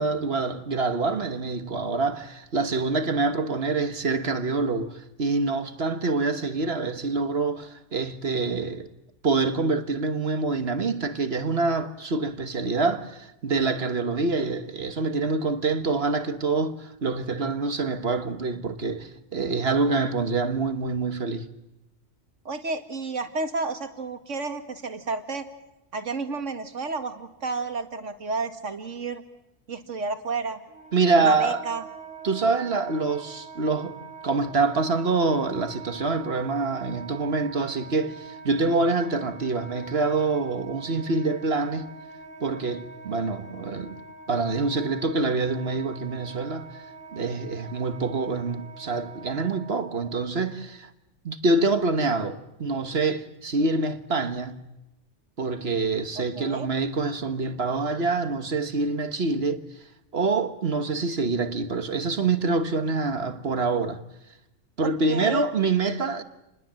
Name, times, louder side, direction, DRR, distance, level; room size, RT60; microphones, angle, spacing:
voice 1, 0.0-8.9 9.2-21.5 30.9-31.6 32.2-34.0 34.2-41.9 42.4-44.0 44.3-46.8 47.1-50.9 51.2-54.6 55.4-59.6 60.1-64.0 64.8-66.2, right 3 dB, 60° right, 1.5 m, -26 dB
voice 2, 22.5-25.5 25.9-29.2 29.7-30.6 31.2-31.8 56.2-56.7 64.8-65.5, right 3 dB, 85° right, 2.2 m, -31 dB
Wind instrument woodwind instrument, 30.7-50.2, right 4 dB, 5° right, 4.8 m, -44 dB
28.5 x 21.0 x 7.5 m
omnidirectional pair, 1.2 m